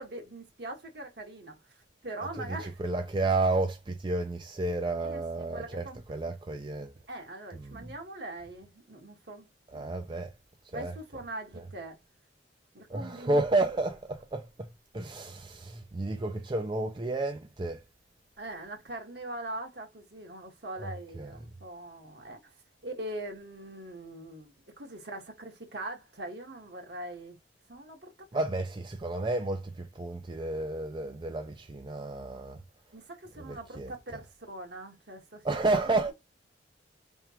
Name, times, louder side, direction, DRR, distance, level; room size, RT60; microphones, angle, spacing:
voice 1, 0.0-2.8 5.0-6.0 7.1-10.2 10.7-12.0 12.7-13.4 18.4-22.5 22.8-27.4 27.7-28.1 32.9-35.4, right 1 dB, 65° right, 1.6 m, -42 dB
voice 2, 2.4-6.9 7.6-7.9 9.7-10.3 10.7-10.9 12.9-14.7 14.9-17.8 20.8-20.9 21.2-21.3 28.3-32.6 33.4-33.9 35.4-36.1, right 2 dB, 25° right, 0.5 m, -31 dB
4.7 x 3.5 x 2.9 m
head